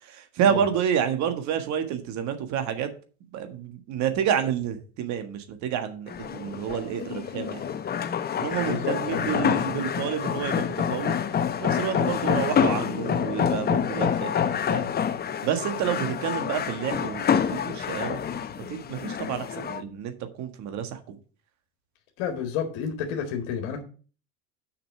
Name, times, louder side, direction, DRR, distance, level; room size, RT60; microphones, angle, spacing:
voice 1, 0.0-2.9 3.3-7.6 8.4-11.1 11.6-14.9 15.4-18.2 18.7-21.2, right 8 dB, 55° right, 8 dB, 1.6 m, -29 dB
sound 1, 6.1-19.8, left 8 dB, 30° left, 0.9 m, -27 dB
voice 2, 8.6-9.5 22.2-23.8, left 7 dB, 70° left, 4 dB, 1.9 m, -31 dB
6.6 x 5.8 x 6.6 m, 0.39 s
supercardioid pair, 100°, 34 cm